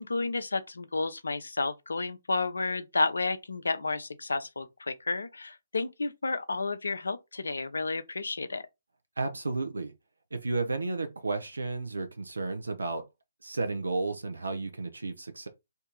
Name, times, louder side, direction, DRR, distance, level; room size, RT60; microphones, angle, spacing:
voice 1, 0.0-8.6, left 3 dB, 65° left, 0.5 m, -31 dB
voice 2, 9.2-9.9 10.3-13.1 13.4-15.5, right 3 dB, 70° right, 0.7 m, -32 dB
2.7 x 2.6 x 3.7 m
figure-of-eight pair, 135°, 0 cm